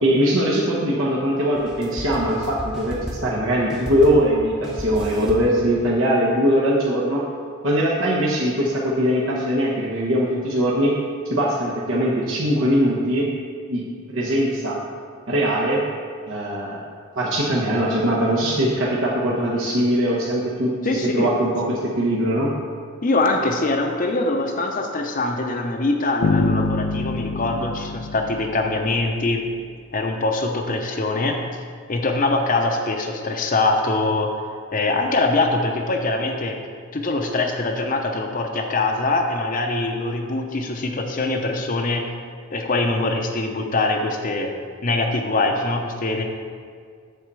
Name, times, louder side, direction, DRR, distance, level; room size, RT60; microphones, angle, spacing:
voice 1, 0.0-7.2 7.6-10.9 11.3-13.3 13.7-13.8 14.1-14.8 15.3-15.8 16.3-16.8 17.1-22.5, equal, 70° right, -5 dB, 1.1 m, -21 dB
sound 1, 1.6-3.4 3.7-4.4 4.6-5.6, equal, 5° right, 1.0 m, -34 dB
voice 2, 20.8-21.3 23.0-29.4 29.9-31.4 31.9-34.3 34.7-36.6 36.9-42.1 42.5-44.5 44.8-46.2, left 2 dB, 40° left, 3 dB, 0.7 m, -23 dB
sound 2, 26.2-29.3, left 3 dB, 80° left, 0.5 m, -25 dB
7.8 x 4.2 x 6.8 m, 2.1 s
head